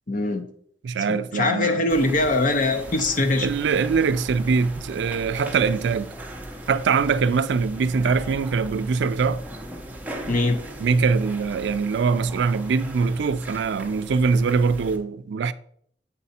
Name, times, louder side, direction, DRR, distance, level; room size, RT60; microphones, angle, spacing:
voice 1, 0.1-0.4 1.1-3.5 10.3-10.6, left 2 dB, 45° left, 0.8 m, -22 dB
voice 2, 0.8-1.8 3.4-6.1 6.7-9.4 10.8-15.5, right 5 dB, 80° right, 0.4 m, -23 dB
sound 1, 1.9-15.0, right 1 dB, 10° right, 0.7 m, -38 dB
8.1 x 4.1 x 4.2 m
head